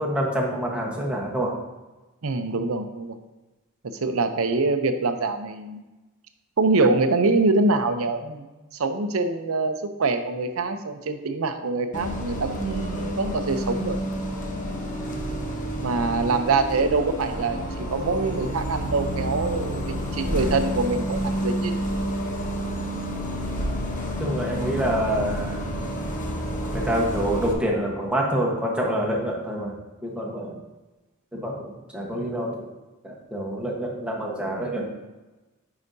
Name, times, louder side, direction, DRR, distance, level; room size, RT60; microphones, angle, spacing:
voice 1, 0.0-1.6 24.2-25.6 26.7-29.8 30.0-30.6 31.3-32.7 33.0-34.9, right 1 dB, 5° right, -2 dB, 1.1 m, -26 dB
voice 2, 2.2-3.1 4.0-5.8 6.6-8.5 8.7-14.0 15.2-15.3 15.8-21.9, right 3 dB, 70° right, 8 dB, 0.6 m, -24 dB
Bus, 11.9-27.5, equal, 40° left, 0.9 m, -29 dB
9.7 x 4.9 x 2.7 m, 1.1 s
head